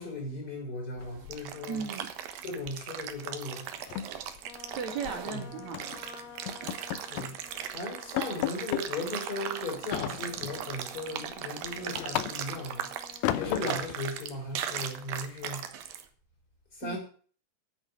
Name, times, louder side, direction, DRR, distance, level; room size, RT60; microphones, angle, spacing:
voice 1, 0.0-1.9 2.4-3.7 5.3-5.4 7.0-7.4 7.7-12.9 13.3-15.7 16.7-17.0, left 2 dB, 25° left, 6.0 m, -37 dB
sound 1, 1.0-1.8 2.1-2.3 2.7-2.9 3.2-3.3 3.7-5.2 5.7-6.0 6.5-7.4 7.7-7.8 8.2-8.9 9.9-10.7 11.1-12.7 13.2-14.0, left 13 dB, 90° left, 2.6 m, -34 dB
sound 2, 1.0-16.0, right 9 dB, 80° right, 3.0 m, -38 dB
voice 2, 1.7-2.1 4.8-6.0 16.8-17.0, right 6 dB, 55° right, 3.5 m, -36 dB
Trumpet, 4.4-13.8, left 6 dB, 50° left, 2.7 m, -51 dB
11.0 x 9.4 x 8.2 m
omnidirectional pair, 4.0 m